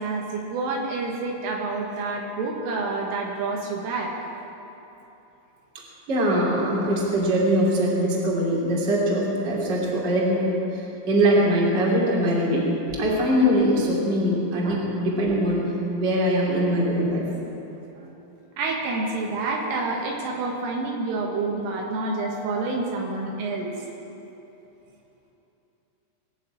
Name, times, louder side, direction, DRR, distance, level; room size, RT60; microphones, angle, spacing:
voice 1, 0.0-4.1 14.6-14.9 18.0-18.1 18.6-23.7, right 3 dB, 75° right, -1 dB, 4.0 m, -28 dB
voice 2, 6.1-15.6 15.9-17.2, equal, 25° right, -5 dB, 2.7 m, -22 dB
21.0 x 7.2 x 8.5 m, 3.0 s
omnidirectional pair, 6.0 m